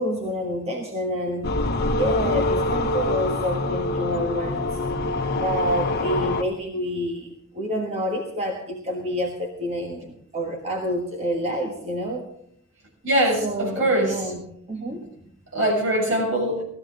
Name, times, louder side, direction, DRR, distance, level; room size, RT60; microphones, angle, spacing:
voice 1, 0.0-1.5 1.9-4.7 5.3-12.3 13.4-14.4 14.7-15.1, equal, 30° right, 0 dB, 1.4 m, -28 dB
sound 1, 1.4-6.4, left 2 dB, 50° left, 1.1 m, -25 dB
voice 2, 13.0-14.3 14.9-15.0 15.5-16.6, right 1 dB, 60° right, -2 dB, 6.8 m, -22 dB
17.5 x 14.0 x 3.8 m, 0.71 s
head